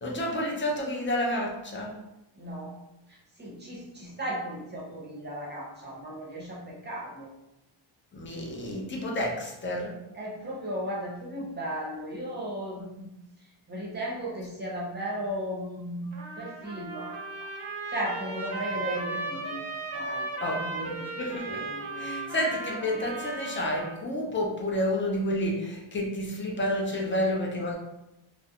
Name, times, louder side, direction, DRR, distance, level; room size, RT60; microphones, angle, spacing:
voice 1, 0.0-2.0 8.1-10.0 18.8-19.3 20.4-21.6 22.0-27.7, left 1 dB, 25° left, -1 dB, 0.4 m, -30 dB
voice 2, 2.4-2.7 3.1-7.3 10.1-13.1 13.7-17.2 17.9-19.6 19.9-21.1 21.5-22.3, equal, 20° right, -4 dB, 0.7 m, -36 dB
Trumpet, 16.1-24.0, right 3 dB, 75° right, 0.7 m, -36 dB
2.4 x 2.0 x 2.8 m, 0.92 s
wide cardioid pair, 135°, 49 cm